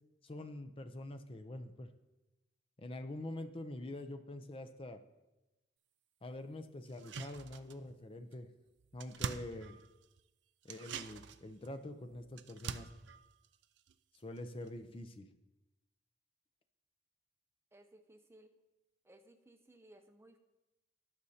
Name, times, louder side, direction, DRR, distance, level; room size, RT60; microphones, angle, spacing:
voice 1, 0.2-1.9 2.8-5.0 6.2-8.5 8.9-9.8 10.6-12.9 14.2-15.3, left 1 dB, 30° left, 7 dB, 0.5 m, -45 dB
sound 1, 6.9-8.0 8.3-8.4 8.7-10.2 10.6-14.4 14.7-14.8, right 6 dB, 65° right, 0.4 m, -45 dB
voice 2, 17.7-18.5 19.0-20.4, right 1 dB, 15° right, 7 dB, 0.6 m, -61 dB
19.0 x 6.4 x 2.8 m, 1.0 s
head